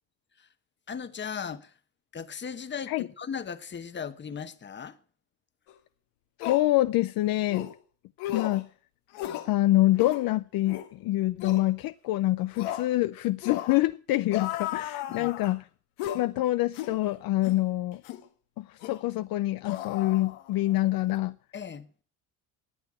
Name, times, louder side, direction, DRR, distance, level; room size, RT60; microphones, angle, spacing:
voice 1, 0.9-1.7 2.1-5.0 15.1-15.3 21.5-21.9, left 7 dB, 30° left, 1.2 m, -37 dB
sound 1, 5.7-5.8 6.4-6.7 7.5-7.7 8.2-8.6 9.1-9.5 9.9-10.2 10.7-10.9 11.4-11.6 12.6-12.9 13.4-13.8 14.3-15.6 16.0-16.3 16.7-17.0 17.4-17.6 18.0-18.2 18.8-19.0 19.6-20.7 21.0-21.2, left 12 dB, 90° left, 1.7 m, -35 dB
voice 2, 6.4-7.7 8.3-8.7 9.4-15.6 16.1-18.0 18.6-21.4, left 16 dB, 65° left, 0.6 m, -26 dB
19.5 x 6.9 x 7.5 m
cardioid pair, 100°, 39 cm